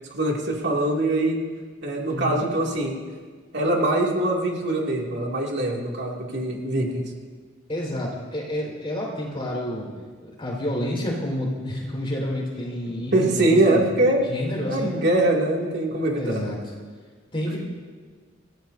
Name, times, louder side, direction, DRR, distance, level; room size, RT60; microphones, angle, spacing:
voice 1, 0.1-1.4 1.8-2.9 3.5-7.1 12.9-14.3 14.7-16.4 17.5-17.6, right 1 dB, 60° right, -2 dB, 2.6 m, -23 dB
voice 2, 2.1-2.4 7.7-9.9 10.2-13.8 14.3-15.1 16.2-16.6 17.3-17.6, left 1 dB, 30° left, -3 dB, 4.7 m, -29 dB
28.0 x 15.5 x 2.7 m, 1.5 s
head